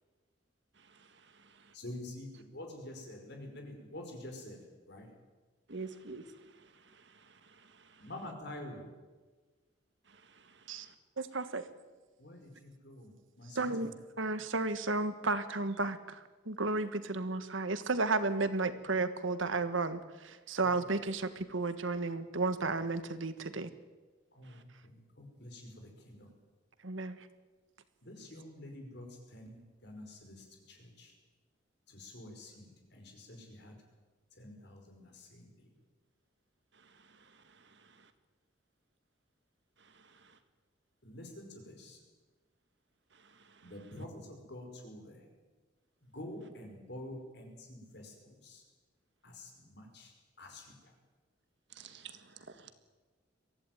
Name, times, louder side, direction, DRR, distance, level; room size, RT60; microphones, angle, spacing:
voice 1, 0.8-1.7 5.7-8.1 10.1-10.9 24.4-24.6 36.7-38.1 39.8-40.4 43.1-43.7 51.7-51.9 52.6-52.7, right 3 dB, 60° right, 9 dB, 1.8 m, -52 dB
voice 2, 1.7-4.6 4.9-5.1 8.0-8.9 12.2-14.0 24.3-26.3 28.0-31.1 31.9-33.8 34.3-35.5 41.0-42.0 43.6-45.3 46.0-48.6 49.2-50.1 50.4-51.0, left 1 dB, 55° left, 3 dB, 5.3 m, -48 dB
voice 3, 11.2-11.6 13.5-13.9 14.2-23.7 26.8-27.3, right 3 dB, 80° right, 11 dB, 1.5 m, -33 dB
23.0 x 15.5 x 9.3 m, 1.3 s
head